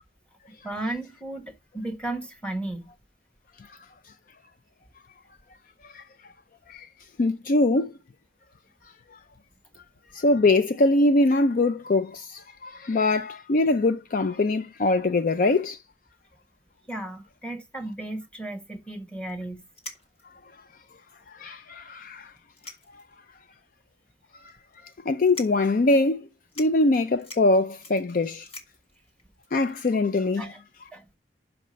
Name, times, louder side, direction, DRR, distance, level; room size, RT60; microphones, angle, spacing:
voice 1, 0.5-2.9 16.9-19.7 30.4-30.6 30.9-31.0, right 2 dB, 5° left, 1.4 m, -34 dB
voice 2, 7.2-7.9 9.1-9.2 10.1-15.8 21.3-22.3 22.9-23.0 24.4-24.5 25.1-26.3 26.6-28.5 29.5-30.5, left 2 dB, 50° left, 0.4 m, -23 dB
sound 1, 19.3-19.4 19.7-20.4 21.1-21.2 21.4-21.5 22.4-23.2 23.6-23.7 24.5-24.7 25.2-25.8 26.2-26.3 26.5-30.2, left 2 dB, 35° left, 1.7 m, -44 dB
5.9 x 5.1 x 6.3 m
head